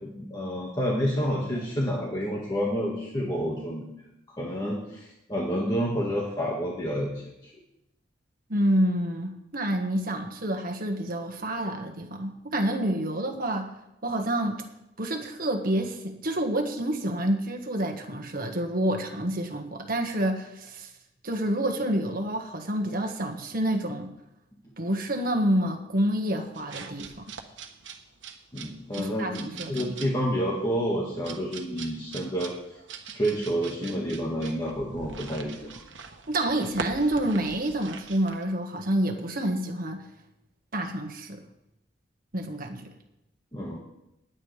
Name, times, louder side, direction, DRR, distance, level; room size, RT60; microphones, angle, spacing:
voice 1, 0.0-3.8 4.4-7.1 7.4-7.5 28.5-32.5 33.1-35.7 43.5-43.8, equal, 20° left, -3 dB, 1.8 m, -29 dB
voice 2, 8.5-13.7 14.0-14.6 15.0-20.9 21.2-24.1 24.8-27.2 29.0-29.9 36.3-40.0 40.7-41.4 42.3-42.9, right 1 dB, 50° right, 4 dB, 1.6 m, -28 dB
sound 1, 26.5-38.4, right 5 dB, 85° right, 1.2 m, -43 dB
20.0 x 8.9 x 3.4 m, 0.88 s
head